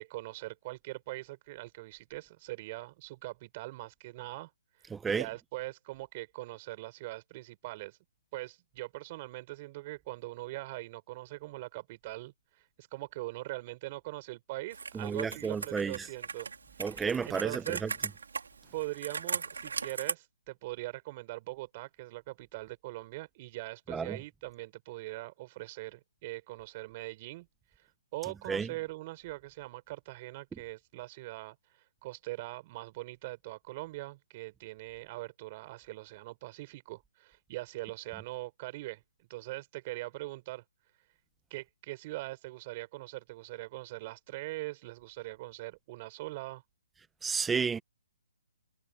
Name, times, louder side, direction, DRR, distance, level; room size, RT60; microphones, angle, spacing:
voice 1, 0.0-4.5 4.8-8.0 8.3-16.5 16.8-17.8 18.7-27.5 27.8-31.6 32.0-39.0 39.3-40.6 41.5-46.6, right 19 dB, 30° right, 5.7 m, -42 dB
voice 2, 4.9-5.2 14.9-15.9 16.8-17.9 23.9-24.2 28.5-28.7 47.2-47.8, right 5 dB, 5° right, 1.1 m, -31 dB
Computer keyboard, 14.7-20.1, right 5 dB, 90° right, 3.9 m, -38 dB
hypercardioid pair, 165°, 0 cm